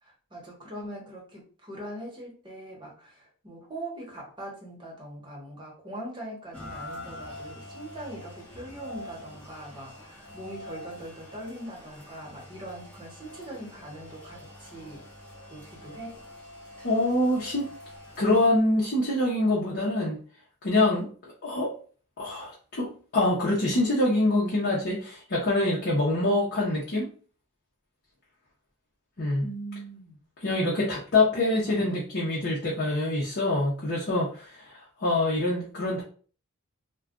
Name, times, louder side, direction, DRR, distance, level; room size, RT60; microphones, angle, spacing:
voice 1, 0.0-15.0 15.5-16.2 29.4-30.2 31.3-31.8, right 1 dB, 20° right, -2 dB, 1.0 m, -41 dB
Rain, 6.5-18.5, left 1 dB, 5° left, 0.9 m, -45 dB
voice 2, 16.8-17.7 18.2-20.2 20.6-21.1 21.4-21.7 22.2-27.1 29.2-29.4 30.4-36.0, left 2 dB, 50° left, -5 dB, 0.8 m, -25 dB
2.4 x 2.2 x 3.6 m, 0.41 s
head